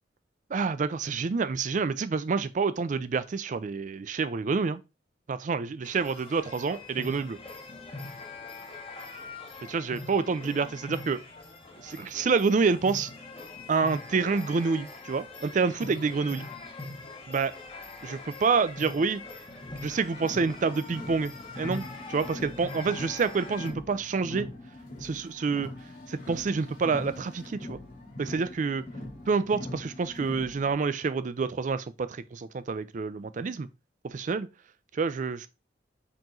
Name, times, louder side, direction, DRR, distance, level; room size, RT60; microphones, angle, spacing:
voice 1, 0.5-4.8 5.3-7.4 9.7-11.2 11.8-13.1 13.7-16.4 17.3-17.5 18.0-19.2 19.8-24.5 25.0-25.7 26.1-27.8 28.2-28.8 29.3-33.7 34.0-34.5 34.9-35.5, right 4 dB, 40° right, 0.4 m, -28 dB
sound 1, 5.8-23.7, left 3 dB, 30° left, 0.9 m, -43 dB
Car, 19.6-30.7, left 1 dB, 50° left, 2.1 m, -42 dB
4.7 x 3.0 x 3.7 m
head